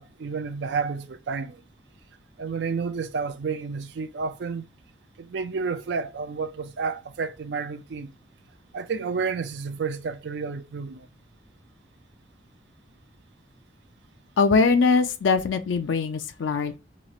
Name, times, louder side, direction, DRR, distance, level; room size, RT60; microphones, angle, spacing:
voice 1, 0.0-1.6 2.4-4.6 5.2-8.1 8.7-11.1, right 5 dB, 65° right, 0.4 m, -30 dB
voice 2, 14.4-16.8, left 4 dB, 90° left, 0.4 m, -22 dB
3.0 x 2.4 x 4.0 m
head